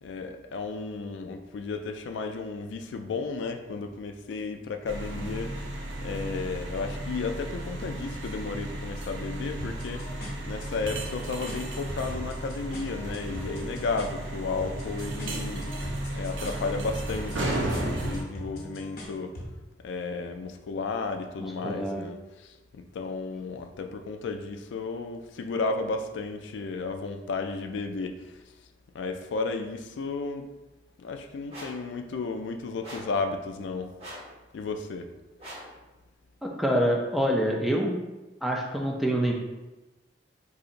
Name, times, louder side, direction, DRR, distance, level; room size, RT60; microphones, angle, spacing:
voice 1, 0.0-5.7 6.0-15.7 16.1-19.4 19.8-28.4 28.9-30.5 31.0-33.9 34.5-35.1, left 4 dB, 80° left, 6 dB, 0.3 m, -33 dB
sound 1, 4.9-18.2, right 1 dB, 90° right, 0.6 m, -34 dB
sound 2, 9.6-19.6, left 1 dB, 50° left, 0.6 m, -42 dB
voice 2, 21.6-22.1 36.4-38.0 38.4-39.3, equal, ahead, -1 dB, 0.3 m, -26 dB
sound 3, 31.5-31.9 32.8-33.2 34.0-34.4 35.4-35.8, equal, 35° right, 0.9 m, -42 dB
3.9 x 2.7 x 2.5 m, 1.1 s
head